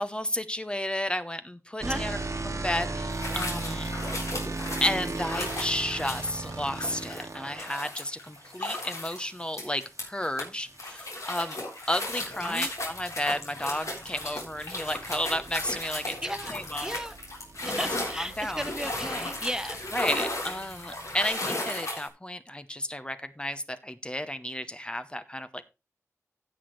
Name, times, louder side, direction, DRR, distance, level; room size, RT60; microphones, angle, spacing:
voice 1, 0.0-2.2 2.4-3.9 4.8-11.6 11.9-17.0 17.6-17.9 18.2-18.6 19.9-25.6, left 1 dB, 20° left, 11 dB, 0.8 m, -32 dB
sound 1, 1.8-7.8 10.3-21.3, right 2 dB, 80° right, 1.4 m, -38 dB
sound 2, 3.1-10.4 10.8-22.1, left 2 dB, 70° left, 3.8 m, -35 dB
voice 2, 12.4-12.7 16.2-16.5 16.8-17.2 17.6-19.9, equal, 10° right, 11 dB, 0.7 m, -35 dB
16.0 x 6.1 x 3.2 m, 0.27 s
wide cardioid pair, 80°, 5 cm